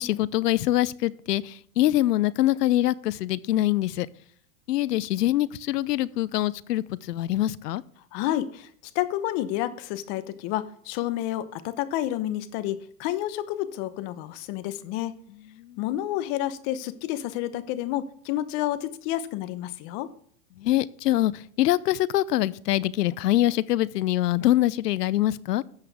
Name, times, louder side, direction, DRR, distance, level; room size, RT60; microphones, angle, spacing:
voice 1, 0.0-4.1 4.7-7.8 15.6-15.8 20.6-25.6, left 14 dB, 80° left, 20 dB, 0.7 m, -24 dB
voice 2, 8.1-8.7 8.9-15.1 15.8-20.1, left 13 dB, 40° left, 13 dB, 1.0 m, -30 dB
12.5 x 7.8 x 3.5 m, 0.63 s
hypercardioid pair, 125°, 47 cm